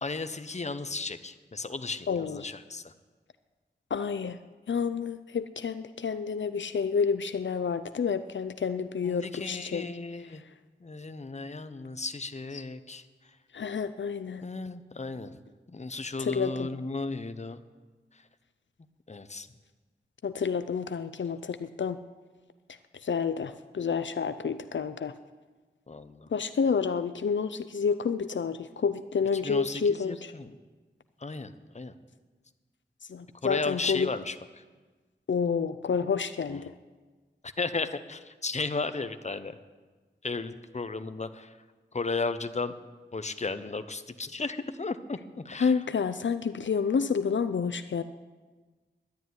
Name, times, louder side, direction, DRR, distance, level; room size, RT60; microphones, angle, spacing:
voice 1, 0.0-2.9 9.0-10.4 10.8-13.0 14.4-15.4 15.7-17.6 18.1-18.2 19.1-19.5 25.9-26.3 29.4-30.6 31.2-31.9 33.4-34.6 36.5-36.6 37.4-39.6 40.2-41.6 41.9-42.7 43.1-45.8, left 3 dB, 35° left, 11 dB, 0.8 m, -35 dB
voice 2, 2.1-2.4 3.9-4.4 4.7-9.9 12.5-12.6 13.5-14.4 16.2-16.7 20.2-22.0 23.0-25.1 26.3-30.3 33.1-34.1 35.3-36.7 45.6-48.0, left 6 dB, 80° left, 12 dB, 0.5 m, -29 dB
11.0 x 10.5 x 9.4 m, 1.3 s
wide cardioid pair, 75°, 19 cm